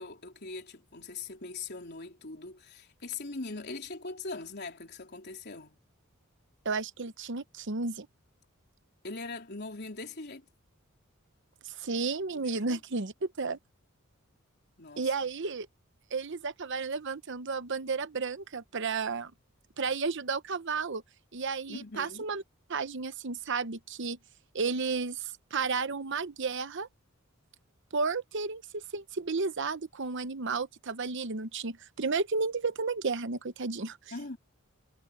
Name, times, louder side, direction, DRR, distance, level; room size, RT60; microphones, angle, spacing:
voice 1, 0.0-5.8 9.0-10.4 12.3-12.8 14.8-15.1 21.7-22.3 34.1-34.4, left 3 dB, 50° left, 3.6 m, -41 dB
voice 2, 6.6-8.1 11.6-13.6 15.0-15.7 16.1-19.3 19.8-21.0 21.3-22.4 22.7-24.2 24.5-26.9 27.9-34.0, right 4 dB, 60° right, 0.9 m, -32 dB
head